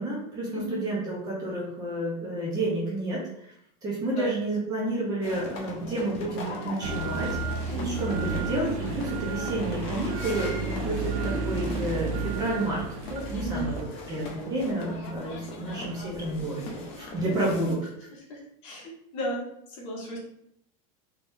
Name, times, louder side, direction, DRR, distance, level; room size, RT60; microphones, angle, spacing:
voice 1, 0.0-3.2 3.8-7.4 7.8-12.8 13.1-13.8 14.0-17.9, right 1 dB, 20° right, -4 dB, 0.7 m, -30 dB
sound 1, 5.2-17.8, left 3 dB, 35° left, 0.5 m, -40 dB
sound 2, 6.8-13.8, right 4 dB, 70° right, 0.6 m, -32 dB
voice 2, 13.3-13.7 18.3-19.4 19.7-20.2, equal, 55° left, -4 dB, 1.5 m, -34 dB
3.5 x 3.0 x 2.6 m, 0.72 s
supercardioid pair, 175°, 19 cm